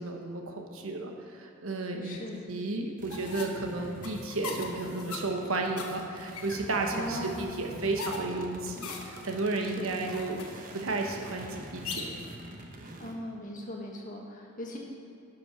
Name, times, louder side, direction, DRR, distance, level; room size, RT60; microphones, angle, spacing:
voice 1, 0.0-2.2 2.5-10.5 10.7-12.1, right 2 dB, 70° right, 2 dB, 1.2 m, -33 dB
voice 2, 2.0-2.4 6.9-7.5 9.6-9.9 13.0-14.8, left 1 dB, 35° left, -1 dB, 1.5 m, -39 dB
sound 1, 3.0-13.1, right 1 dB, 40° right, 0.9 m, -46 dB
sound 2, 3.1-12.3, left 4 dB, 85° left, 1.1 m, -42 dB
11.5 x 5.9 x 5.8 m, 2.6 s
head